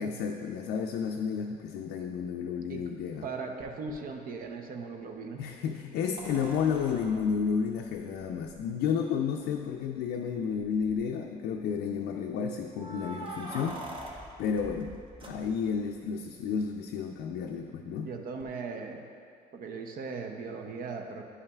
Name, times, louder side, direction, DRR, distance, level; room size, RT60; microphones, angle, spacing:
voice 1, 0.0-3.3 5.4-13.8 14.4-15.0 15.2-18.1, left 6 dB, 75° left, 2 dB, 0.4 m, -31 dB
voice 2, 3.2-5.4 18.0-19.1 19.5-21.2, right 4 dB, 60° right, 3 dB, 0.6 m, -38 dB
sound 1, 3.9-4.0 6.2-8.6 9.5-9.6 9.9-10.0 10.6-11.0 12.7-15.9 18.4-18.5, right 1 dB, 30° right, 0.9 m, -44 dB
9.5 x 5.5 x 2.3 m, 2.2 s
cardioid pair, 110°, 17 cm